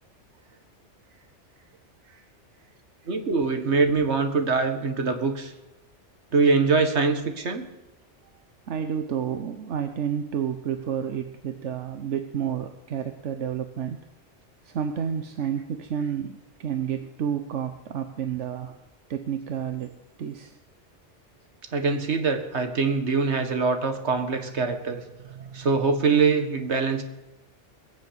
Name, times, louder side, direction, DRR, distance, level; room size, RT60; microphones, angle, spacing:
voice 1, 3.1-5.5 6.3-7.7 21.7-25.0 25.5-27.0, right 4 dB, 70° right, 7 dB, 1.9 m, -23 dB
voice 2, 8.7-14.0 14.6-18.7 19.1-19.9 20.2-20.6 25.2-25.7, right 8 dB, 85° right, 8 dB, 1.2 m, -31 dB
22.0 x 7.5 x 8.0 m, 1.0 s
omnidirectional pair, 1.2 m